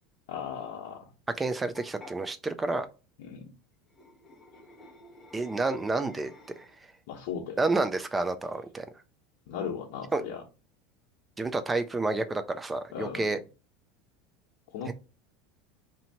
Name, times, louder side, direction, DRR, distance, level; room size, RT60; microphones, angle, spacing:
voice 1, 0.3-1.1 3.2-3.5 7.1-7.6 9.5-10.4 12.9-13.3 14.7-14.9, left 7 dB, 60° left, 0.9 m, -37 dB
voice 2, 1.4-2.9 5.3-6.3 7.6-8.9 10.1-10.2 11.4-13.4 14.9-15.0, right 3 dB, 10° right, 0.3 m, -29 dB
sound 1, 1.7-2.2 3.9-6.9, left 2 dB, 10° left, 0.7 m, -52 dB
2.9 x 2.6 x 4.2 m
supercardioid pair, 170°, 0 cm